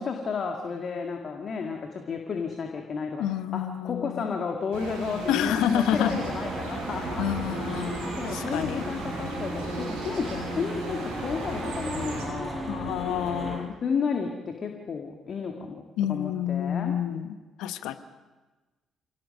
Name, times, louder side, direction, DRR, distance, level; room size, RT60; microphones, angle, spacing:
voice 1, 0.0-3.2 3.5-7.2 8.2-12.7 13.8-15.8 16.1-16.9, left 5 dB, 50° left, 3 dB, 2.1 m, -32 dB
voice 2, 3.2-4.3 5.3-6.2 7.2-8.9 12.7-13.7 16.0-17.3 17.6-18.0, left 11 dB, 70° left, 11 dB, 1.0 m, -29 dB
sound 1, 4.7-12.3, right 3 dB, 75° right, 6.2 m, -38 dB
sound 2, 5.9-13.6, right 1 dB, 30° right, 7.4 m, -35 dB
27.0 x 18.0 x 5.4 m, 1.2 s
hypercardioid pair, 45°, 0 cm